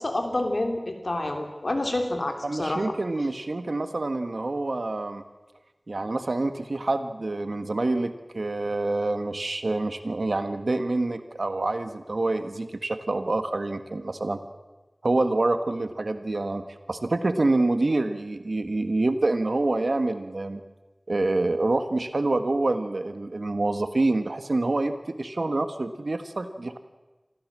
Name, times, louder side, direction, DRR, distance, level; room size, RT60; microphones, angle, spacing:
voice 1, 0.0-2.9, left 1 dB, 75° left, 5 dB, 3.1 m, -28 dB
voice 2, 2.4-5.2 5.9-14.4 15.0-20.6 21.1-26.8, right 2 dB, 90° right, 9 dB, 1.5 m, -27 dB
25.5 x 15.5 x 7.6 m, 1.2 s
wide cardioid pair, 45°, 0 cm